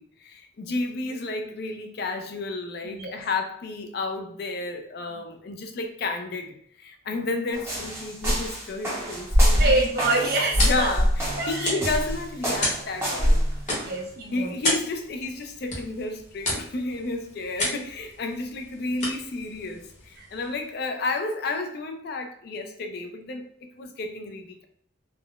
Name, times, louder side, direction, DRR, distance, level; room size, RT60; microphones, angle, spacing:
voice 1, 0.0-9.6 10.6-13.4 14.3-24.6, left 3 dB, 55° left, 5 dB, 0.4 m, -32 dB
voice 2, 2.8-3.2 9.6-10.9 11.4-11.9 13.7-14.5 20.2-20.3, right 2 dB, 50° right, -1 dB, 0.7 m, -26 dB
sound 1, 7.5-14.0, equal, 15° right, 0.9 m, -24 dB
sound 2, 9.5-20.7, left 1 dB, 40° left, 1.0 m, -34 dB
3.6 x 2.0 x 2.3 m, 0.63 s
head